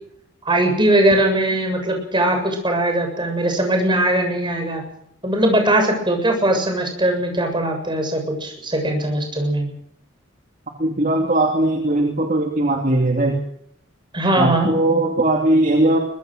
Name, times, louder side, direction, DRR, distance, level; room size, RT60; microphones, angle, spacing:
voice 1, 0.5-4.8 5.2-9.7 14.1-14.7, right 1 dB, 25° right, 4 dB, 7.3 m, -20 dB
voice 2, 10.8-13.4 14.4-16.0, right 1 dB, 40° right, 2 dB, 2.6 m, -19 dB
23.5 x 20.5 x 6.6 m, 0.70 s
head